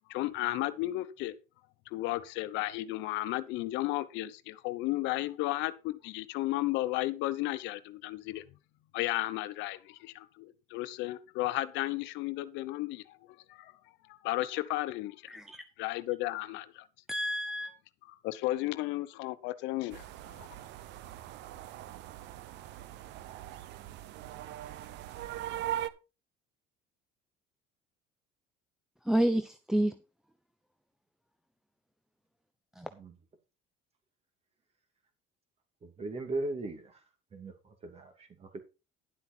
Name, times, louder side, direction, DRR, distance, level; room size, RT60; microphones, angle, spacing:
voice 1, 0.1-1.3 1.9-8.4 8.9-13.7 14.1-15.2 15.8-16.8 18.1-20.6, left 17 dB, 75° left, 0.9 m, -34 dB
voice 2, 15.3-15.6 17.1-17.7 29.1-29.9 32.8-32.9, right 1 dB, ahead, 0.7 m, -29 dB
sound 1, 19.9-25.9, right 12 dB, 70° right, 0.9 m, -41 dB
voice 3, 35.8-37.0 37.3-38.6, right 2 dB, 35° right, 2.9 m, -38 dB
11.0 x 8.1 x 4.5 m
cardioid pair, 120°, 19 cm